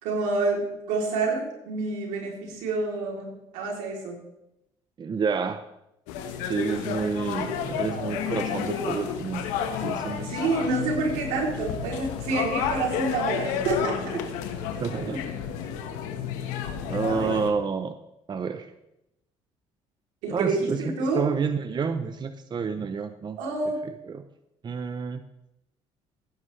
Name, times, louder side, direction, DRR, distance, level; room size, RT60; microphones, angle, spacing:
voice 1, 0.0-4.2 10.2-14.2 15.0-15.2 17.1-17.3 20.2-21.2 23.4-23.8, right 3 dB, 85° right, -1 dB, 3.3 m, -28 dB
voice 2, 5.0-5.6 6.5-9.5 9.8-10.4 14.8-15.2 16.9-17.9 18.3-18.7 20.3-23.4 24.1-24.2 24.6-25.2, right 5 dB, 35° right, 10 dB, 0.7 m, -29 dB
sound 1, 6.1-17.5, left 7 dB, 90° left, 1.4 m, -31 dB
16.5 x 9.5 x 3.3 m, 0.86 s
supercardioid pair, 80°, 12 cm